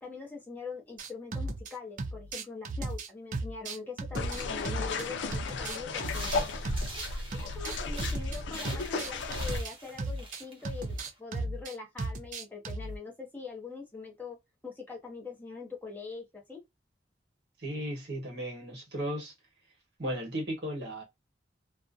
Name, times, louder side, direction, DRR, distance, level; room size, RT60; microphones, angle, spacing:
voice 1, 0.0-6.4 6.9-14.4 14.6-16.6, left 4 dB, 10° left, 0.7 m, -43 dB
sound 1, 1.0-1.7 2.0-5.1 5.3-8.4 8.6-13.0, right 2 dB, 45° right, 0.4 m, -36 dB
sound 2, 4.2-9.6, left 3 dB, 90° left, 0.4 m, -34 dB
Walking through leaves, 6.0-8.2 8.5-11.1, right 2 dB, 30° right, 0.8 m, -45 dB
voice 2, 17.6-19.3 20.0-21.0, equal, 65° right, 1.1 m, -35 dB
2.4 x 2.1 x 2.5 m
head